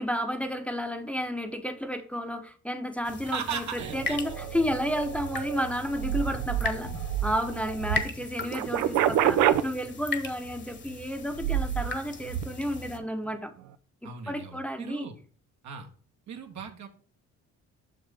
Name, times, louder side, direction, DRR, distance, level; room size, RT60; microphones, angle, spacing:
voice 1, 0.0-6.9 7.2-13.5 14.3-15.1, equal, 5° left, 5 dB, 0.8 m, -31 dB
sound 1, 3.0-13.0, left 3 dB, 35° left, 1.2 m, -39 dB
voice 2, 3.2-4.2 14.0-15.1 15.6-15.9 16.3-16.9, right 7 dB, 70° right, 4 dB, 1.4 m, -37 dB
sound 2, 3.8-8.0 8.4-9.6 11.3-11.9 12.3-12.4, right 11 dB, 85° right, 0.6 m, -28 dB
6.5 x 5.9 x 3.4 m, 0.44 s
cardioid pair, 90°, 30 cm